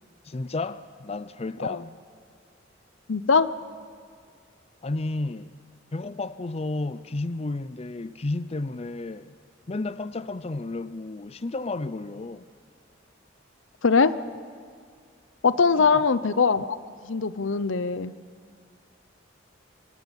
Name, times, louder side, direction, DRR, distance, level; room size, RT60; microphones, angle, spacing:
voice 1, 0.2-2.0 4.8-5.5 5.9-9.3 9.7-12.5 15.7-16.0, left 2 dB, 30° left, 0.5 m, -32 dB
voice 2, 3.1-3.5 13.8-14.2 15.4-16.7 17.0-18.1, left 5 dB, 80° left, 0.8 m, -21 dB
24.0 x 22.5 x 8.2 m
head